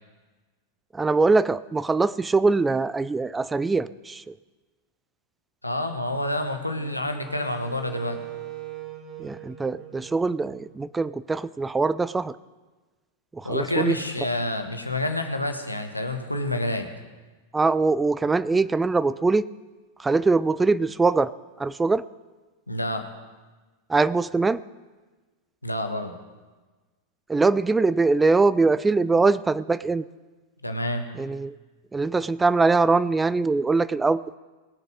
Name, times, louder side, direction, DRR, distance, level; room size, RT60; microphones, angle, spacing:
voice 1, 0.9-4.3 9.2-12.3 13.3-14.0 17.5-19.4 20.0-21.3 21.6-22.0 23.9-24.6 27.3-30.0 31.2-31.6 31.9-34.4, right 3 dB, 10° right, 17 dB, 0.3 m, -22 dB
voice 2, 5.6-8.2 13.4-16.9 22.7-23.0 25.6-26.1 30.6-31.1, left 1 dB, 85° left, 6 dB, 1.2 m, -28 dB
Wind instrument woodwind instrument, 6.7-11.0, right 10 dB, 30° right, 1.6 m, -41 dB
20.0 x 6.8 x 5.0 m, 1.3 s
figure-of-eight pair, 90°, 0 cm